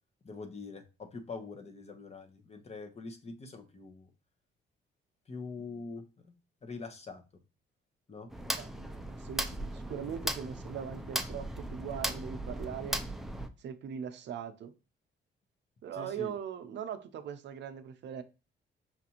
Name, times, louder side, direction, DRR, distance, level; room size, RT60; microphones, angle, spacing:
voice 1, 0.2-4.1 5.3-6.3 6.6-7.2 8.1-8.3 15.9-16.3, left 4 dB, 35° left, 0.9 m, -44 dB
sound 1, 8.3-13.5, right 1 dB, ahead, 0.5 m, -37 dB
voice 2, 8.4-13.0 13.6-14.7 15.8-18.2, right 8 dB, 65° right, 0.6 m, -41 dB
5.7 x 2.5 x 2.8 m
cardioid pair, 90°, 20 cm